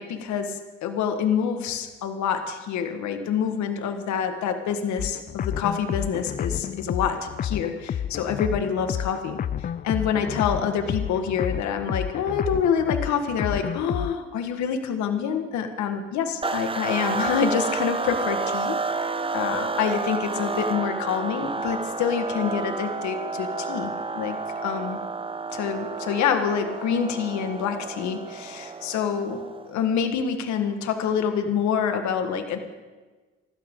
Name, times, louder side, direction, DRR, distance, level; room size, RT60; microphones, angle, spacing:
voice 1, 0.0-24.4 24.6-25.0 25.5-29.4 29.7-32.6, left 7 dB, 75° left, 7 dB, 1.7 m, -27 dB
sound 1, 5.0-14.2, left 9 dB, 30° left, 0.4 m, -31 dB
sound 2, 16.4-29.8, right 3 dB, 20° right, 0.8 m, -30 dB
24.5 x 12.5 x 3.9 m, 1.3 s
supercardioid pair, 65°, 29 cm